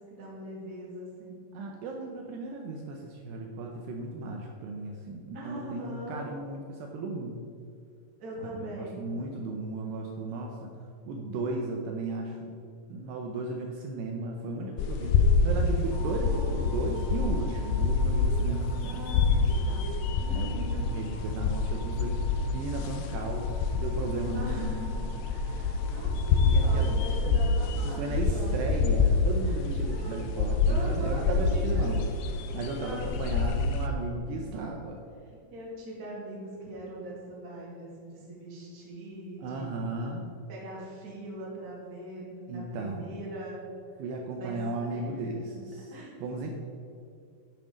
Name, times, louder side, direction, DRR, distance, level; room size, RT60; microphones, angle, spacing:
voice 1, 0.1-1.4 5.3-6.3 8.2-9.1 15.7-16.5 18.9-19.9 20.2-20.9 24.3-28.6 29.4-29.5 29.8-30.3 30.7-32.0 32.8-33.6 34.2-34.5 35.3-39.9 40.5-43.6 44.4-46.5, right 1 dB, 30° right, -5 dB, 2.0 m, -42 dB
voice 2, 1.5-7.4 8.4-10.7 11.1-12.5 12.9-15.2 15.4-19.0 20.3-24.8 26.4-27.4 27.8-32.1 32.5-35.0 39.4-40.4 42.5-43.1 44.0-45.9 46.2-46.5, right 3 dB, 75° right, 1 dB, 2.7 m, -35 dB
sound 1, 14.8-33.9, left 4 dB, 80° left, 2.3 m, -27 dB
sound 2, 15.9-28.1, right 2 dB, 65° left, 1.5 m, -50 dB
11.0 x 6.7 x 5.2 m, 2.4 s
omnidirectional pair, 5.3 m